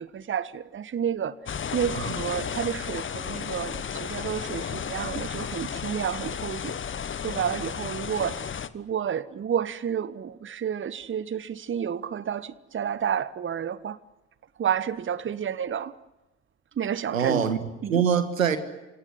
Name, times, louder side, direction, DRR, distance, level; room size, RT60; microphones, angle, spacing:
voice 1, 0.0-1.3 1.7-6.7 7.2-14.0 14.6-15.9 16.8-17.5 17.8-18.0, right 8 dB, 30° right, 1.2 m, -30 dB
sound 1, 1.5-8.7, left 7 dB, 30° left, 1.3 m, -33 dB
voice 2, 17.1-18.6, right 7 dB, 85° right, 1.7 m, -24 dB
29.0 x 17.5 x 9.8 m
figure-of-eight pair, 55°, 39 cm